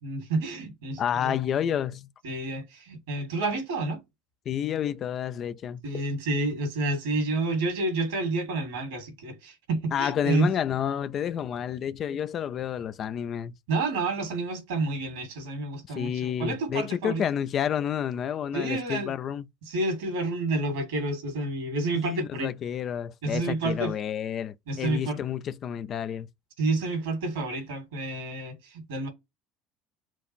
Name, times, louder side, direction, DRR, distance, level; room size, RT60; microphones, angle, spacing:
voice 1, 0.0-1.4 2.2-4.0 5.8-10.5 13.7-17.2 18.5-19.1 19.7-22.5 23.2-23.9 24.7-25.2 26.6-29.1, right 2 dB, 70° right, 2.1 m, -29 dB
voice 2, 1.0-2.1 4.5-5.8 9.9-13.5 15.9-19.4 21.9-26.3, left 9 dB, 45° left, 0.4 m, -30 dB
4.5 x 2.5 x 4.4 m
figure-of-eight pair, 60°, 0 cm